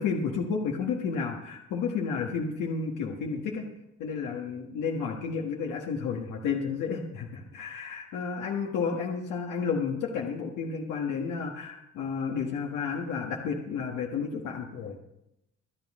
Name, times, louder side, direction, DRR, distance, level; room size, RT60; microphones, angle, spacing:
voice 1, 0.0-3.7 4.0-15.0, left 5 dB, 90° left, -1 dB, 1.6 m, -31 dB
24.5 x 9.0 x 3.7 m, 0.86 s
cardioid pair, 90°, 30 cm